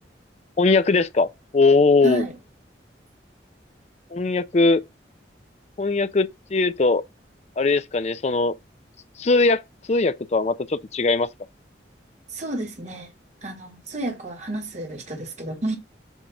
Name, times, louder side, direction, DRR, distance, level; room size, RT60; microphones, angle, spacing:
voice 1, 0.6-1.3 1.5-2.2 4.1-4.8 5.8-7.0 7.6-8.5 9.2-9.6 9.9-11.3, left 3 dB, 40° left, 0.4 m, -20 dB
voice 2, 2.0-2.3 12.3-13.1 13.4-15.8, right 1 dB, 40° right, 1.2 m, -30 dB
7.2 x 2.5 x 5.6 m
head